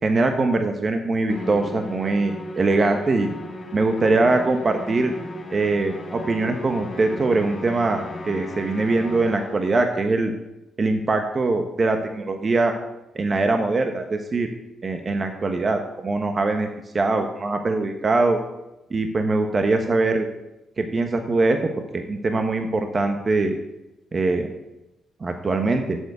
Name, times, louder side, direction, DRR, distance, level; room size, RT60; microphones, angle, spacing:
voice 1, 0.0-3.3 3.7-5.1 5.5-10.3 10.8-12.7 13.1-14.5 14.8-16.7 16.9-18.4 18.9-20.3 20.8-23.6 24.1-24.5 25.2-26.0, right 3 dB, 35° right, 5 dB, 1.1 m, -22 dB
Musical instrument, 1.3-9.8, left 1 dB, 30° left, 2.0 m, -36 dB
8.6 x 7.1 x 8.2 m, 0.97 s
cardioid pair, 90°, 0 cm